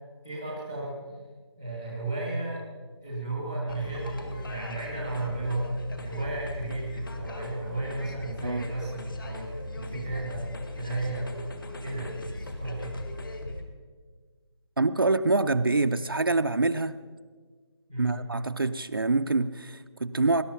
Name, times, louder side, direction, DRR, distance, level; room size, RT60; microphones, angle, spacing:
voice 1, 0.2-1.0 1.6-2.6 3.0-10.4 10.7-11.3 11.8-12.1 12.4-13.0 17.9-18.2, right 2 dB, 5° left, -4 dB, 0.7 m, -34 dB
sound 1, 3.7-13.6, left 2 dB, 45° left, 1.8 m, -38 dB
voice 2, 14.8-16.9 18.0-20.4, right 3 dB, 50° right, 10 dB, 0.5 m, -25 dB
19.5 x 11.0 x 5.8 m, 1.5 s
figure-of-eight pair, 180°, 15 cm